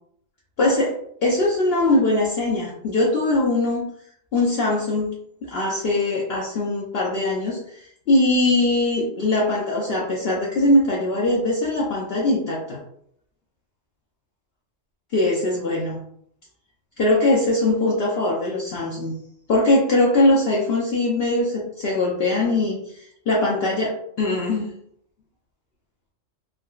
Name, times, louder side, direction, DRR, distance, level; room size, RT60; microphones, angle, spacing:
voice 1, 0.6-0.9 1.2-3.8 4.3-5.1 5.4-12.8 15.1-16.0 17.0-19.2 19.5-24.7, left 2 dB, 60° left, -3 dB, 0.7 m, -21 dB
3.6 x 2.2 x 2.3 m, 0.69 s
omnidirectional pair, 1.3 m